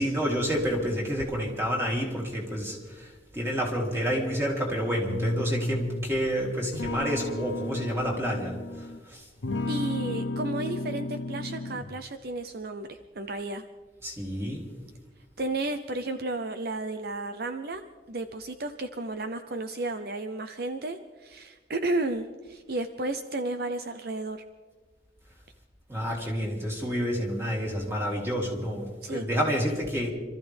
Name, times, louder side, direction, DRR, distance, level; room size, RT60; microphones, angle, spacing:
voice 1, 0.0-9.3 14.0-14.6 25.9-30.1, equal, 15° right, -2 dB, 3.2 m, -29 dB
sound 1, 5.1-6.2 6.7-9.0 9.4-12.0, left 2 dB, 80° left, 0.7 m, -33 dB
voice 2, 9.7-13.6 15.4-17.8 18.1-24.4 29.0-29.3, right 2 dB, 60° right, 8 dB, 0.8 m, -33 dB
26.5 x 14.0 x 3.5 m, 1.3 s
head